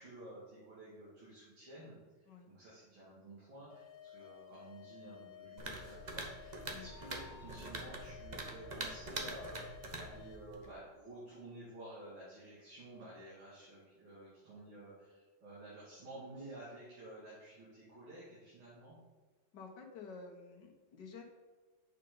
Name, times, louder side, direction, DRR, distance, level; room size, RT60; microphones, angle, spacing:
voice 1, 0.0-9.6 10.0-19.0, right 1 dB, 85° right, -9 dB, 3.2 m, -52 dB
sound 1, 3.7-10.4, left 11 dB, 85° left, 1.7 m, -55 dB
sound 2, 5.6-10.8, right 2 dB, 55° right, 0.4 m, -44 dB
voice 2, 19.5-21.2, left 5 dB, 60° left, 1 dB, 1.8 m, -51 dB
8.2 x 6.7 x 3.9 m, 1.3 s
omnidirectional pair, 2.2 m